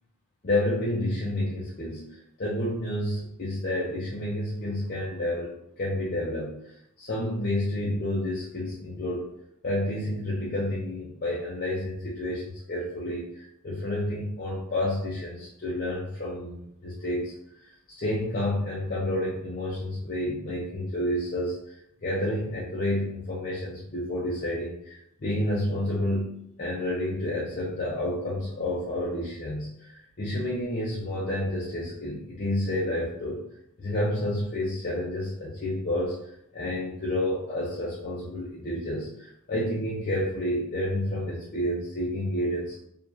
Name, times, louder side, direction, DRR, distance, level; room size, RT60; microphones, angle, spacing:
voice 1, 0.4-9.3 9.6-17.3 17.9-21.7 22.0-33.4 33.8-36.2 36.5-42.8, left 1 dB, 40° left, -6 dB, 0.6 m, -30 dB
4.7 x 2.5 x 2.6 m, 0.76 s
head